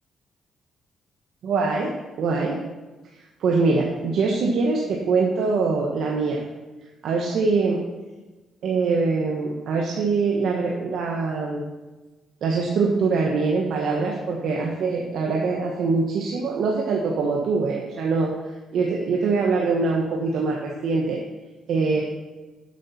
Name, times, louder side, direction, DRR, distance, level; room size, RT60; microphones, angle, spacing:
voice 1, 1.4-2.6 3.4-6.4 7.0-7.8 8.6-11.7 12.4-18.3 18.7-21.2 21.7-22.0, right 4 dB, 70° right, -1 dB, 1.4 m, -23 dB
10.5 x 8.3 x 4.4 m, 1.2 s
cardioid pair, 90°, 0 cm